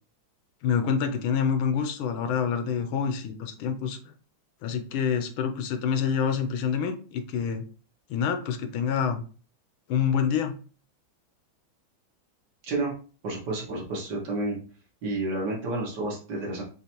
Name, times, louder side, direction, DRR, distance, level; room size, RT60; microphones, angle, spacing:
voice 1, 0.6-4.0 4.6-7.6 8.1-9.2 9.9-10.6, left 7 dB, 85° left, 7 dB, 1.5 m, -27 dB
voice 2, 13.2-14.6 15.0-16.6, right 2 dB, 60° right, -3 dB, 2.2 m, -30 dB
6.2 x 2.9 x 2.9 m, 0.38 s
omnidirectional pair, 2.2 m